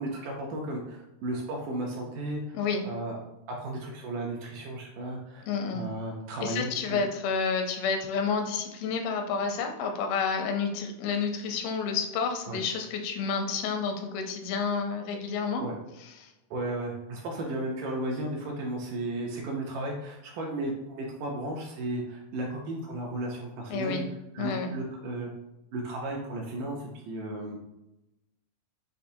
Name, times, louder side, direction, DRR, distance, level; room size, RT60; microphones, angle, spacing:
voice 1, 0.0-2.6 2.8-3.2 3.6-7.1 12.5-12.6 15.6-15.8 16.5-24.1 24.3-25.3 25.7-27.6, right 1 dB, 80° right, -1 dB, 2.0 m, -34 dB
voice 2, 2.5-2.9 5.5-5.9 6.4-15.6 23.7-24.1 24.4-24.7, left 5 dB, 85° left, 4 dB, 2.5 m, -30 dB
6.7 x 2.5 x 2.7 m, 0.92 s
omnidirectional pair, 4.2 m